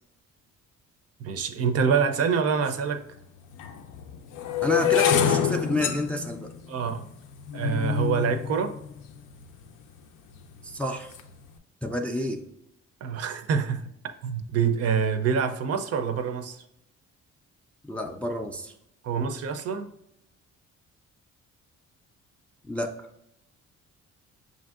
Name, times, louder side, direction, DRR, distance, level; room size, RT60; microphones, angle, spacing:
voice 1, 1.2-3.0 6.7-7.1 7.5-8.8 13.0-13.9 14.2-16.6 19.0-19.9, right 6 dB, 55° right, 0.5 m, -26 dB
sound 1, 2.7-2.8 3.5-9.7 10.3-10.7 11.0-11.3, left 9 dB, 85° left, 0.5 m, -27 dB
voice 2, 4.6-6.5 10.6-11.1 11.8-12.4 17.9-18.7 22.7-22.9, equal, 5° left, 0.3 m, -29 dB
5.7 x 2.6 x 2.4 m
cardioid pair, 90°, 30 cm